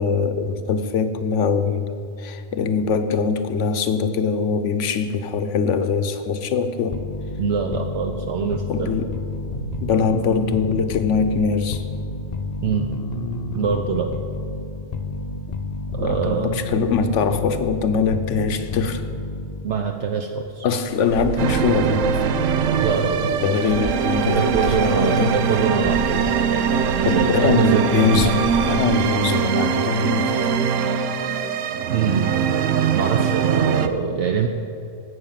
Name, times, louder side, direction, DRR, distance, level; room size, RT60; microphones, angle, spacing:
voice 1, 0.0-7.0 8.7-9.2 9.8-11.8 16.0-19.0 20.6-22.3 23.4-25.4 27.0-30.6, left 5 dB, 75° left, 9 dB, 1.1 m, -22 dB
sound 1, 6.9-19.8, left 3 dB, 40° left, 0.7 m, -30 dB
voice 2, 7.4-8.9 12.6-12.9 13.5-14.1 15.9-16.6 19.6-20.7 22.8-23.3 24.2-28.3 31.9-32.3 32.9-34.5, right 6 dB, 70° right, 4 dB, 1.0 m, -24 dB
sound 2, 20.9-28.7, equal, 40° right, 1.8 m, -32 dB
sound 3, 21.4-33.9, right 7 dB, 90° right, 1.0 m, -22 dB
12.0 x 8.1 x 7.4 m, 2.6 s
omnidirectional pair, 1.3 m